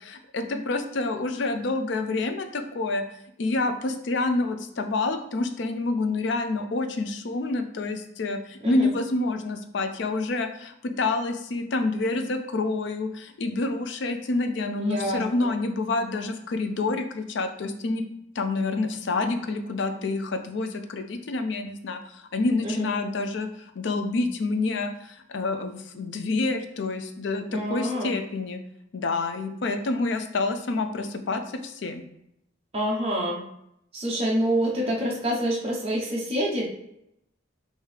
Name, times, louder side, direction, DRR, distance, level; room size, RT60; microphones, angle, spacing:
voice 1, 0.0-3.0 3.4-18.0 18.3-28.6 28.9-32.0, left 3 dB, 65° left, 7 dB, 0.5 m, -28 dB
voice 2, 14.8-15.5 22.6-22.9 27.5-28.1 32.7-33.4 33.9-36.6, equal, 35° right, -4 dB, 0.8 m, -27 dB
4.8 x 2.7 x 3.2 m, 0.79 s
head